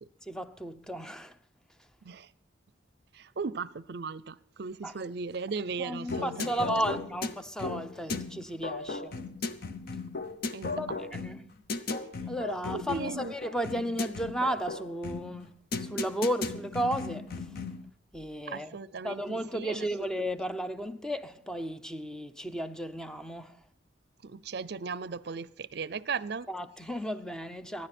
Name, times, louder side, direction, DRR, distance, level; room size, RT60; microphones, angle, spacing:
voice 1, 0.2-1.3 4.8-4.9 5.8-9.2 10.8-11.4 12.3-17.5 18.1-18.8 19.0-23.6 26.5-27.9, equal, 5° left, 0.6 m, -34 dB
voice 2, 3.1-6.7 10.5-10.8 11.2-11.3 12.7-13.3 18.5-19.9 24.2-26.5, right 5 dB, 60° right, 0.5 m, -37 dB
sound 1, 6.1-17.9, left 3 dB, 55° left, 0.8 m, -36 dB
24.0 x 10.5 x 4.3 m
head